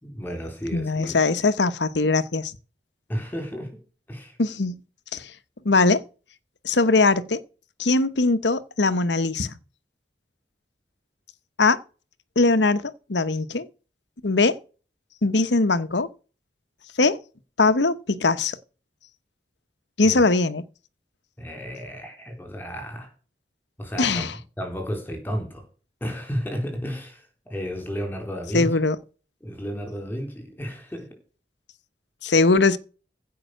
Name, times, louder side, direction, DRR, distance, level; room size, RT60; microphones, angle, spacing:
voice 1, 0.0-1.2 3.1-3.8 4.1-4.4 20.0-20.2 21.4-23.1 23.8-25.6 26.0-28.7 29.4-31.1, equal, 10° left, 3.8 m, -32 dB
voice 2, 0.7-2.5 4.4-4.8 5.1-5.3 5.6-6.0 6.6-7.4 7.8-9.6 11.6-11.8 12.4-13.7 14.2-14.6 15.2-16.1 17.0-17.2 17.6-18.6 20.0-20.6 24.0-24.3 28.5-29.0 32.2-32.8, left 3 dB, 85° left, 1.0 m, -21 dB
15.5 x 5.7 x 6.5 m
head